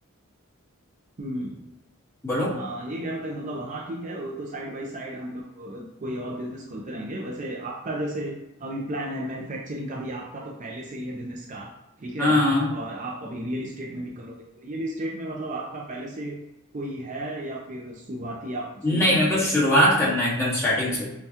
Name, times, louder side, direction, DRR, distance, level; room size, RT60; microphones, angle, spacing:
voice 1, 1.2-1.7 2.5-11.7 12.0-16.4 16.7-19.6, right 1 dB, 35° right, -1 dB, 0.5 m, -34 dB
voice 2, 12.2-12.7 18.8-21.1, left 1 dB, 15° left, -7 dB, 1.3 m, -21 dB
5.5 x 2.3 x 2.8 m, 0.92 s
head